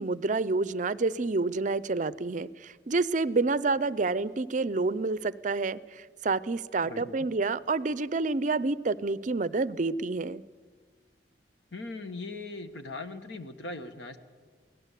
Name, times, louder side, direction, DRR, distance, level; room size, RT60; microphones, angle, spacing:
voice 1, 0.0-10.4, right 3 dB, 45° right, 18 dB, 0.6 m, -28 dB
voice 2, 6.8-7.1 11.7-14.2, left 2 dB, 85° left, 9 dB, 1.6 m, -39 dB
23.5 x 18.0 x 8.3 m, 1.5 s
head